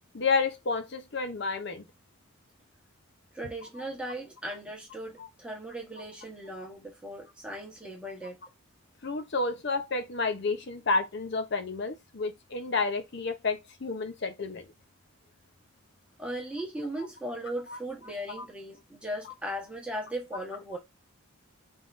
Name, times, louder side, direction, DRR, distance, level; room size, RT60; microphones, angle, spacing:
voice 1, 0.1-1.8 5.2-5.3 9.0-14.7 17.7-17.8 18.3-18.4, left 4 dB, 55° left, 0.7 m, -30 dB
voice 2, 3.3-8.4 16.2-20.8, right 1 dB, 5° right, 1.1 m, -37 dB
3.5 x 3.5 x 2.5 m
head